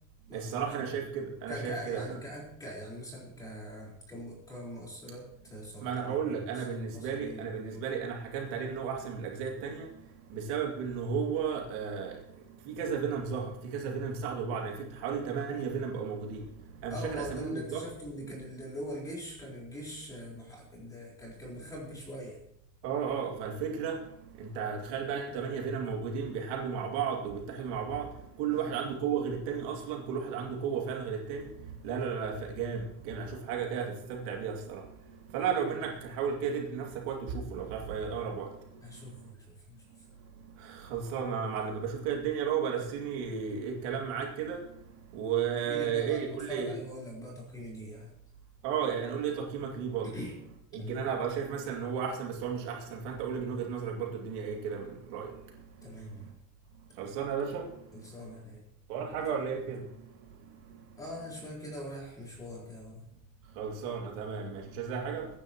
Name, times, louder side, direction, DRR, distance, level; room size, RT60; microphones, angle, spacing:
voice 1, 0.3-2.2 5.8-9.9 10.3-12.2 12.7-16.4 16.8-17.8 22.8-24.0 24.4-28.1 28.4-31.5 31.8-34.8 35.3-38.5 40.6-44.6 45.1-46.7 48.6-50.1 50.7-55.3 57.0-57.6 58.9-59.8 63.6-65.3, right 7 dB, 60° right, 0 dB, 2.5 m, -33 dB
voice 2, 1.5-7.8 16.9-22.4 28.5-28.7 38.8-39.7 45.6-48.1 50.0-50.4 50.8-51.1 55.8-56.3 57.9-58.6 61.0-63.1, equal, 10° left, -4 dB, 4.4 m, -42 dB
22.5 x 10.5 x 3.0 m, 0.74 s
cardioid pair, 180°, 42 cm